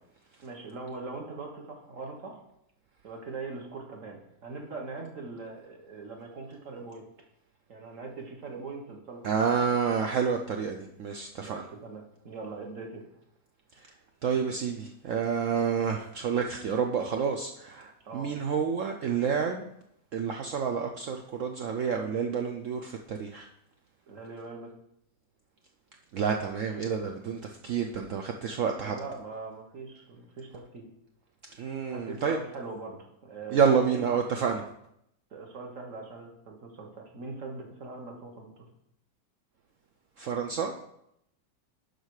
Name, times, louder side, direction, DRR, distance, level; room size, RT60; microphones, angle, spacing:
voice 1, 0.4-2.4 3.0-7.0 7.7-9.4 11.4-13.0 18.0-18.3 24.1-24.7 28.8-30.9 31.9-34.0 35.3-38.7, right 3 dB, 45° right, 1 dB, 1.6 m, -41 dB
voice 2, 9.2-11.7 13.8-13.9 14.2-19.7 20.1-23.5 26.1-29.0 31.6-32.4 33.5-34.6 40.2-40.7, right 6 dB, 85° right, 3 dB, 0.6 m, -29 dB
11.5 x 4.1 x 4.8 m, 0.77 s
omnidirectional pair, 2.1 m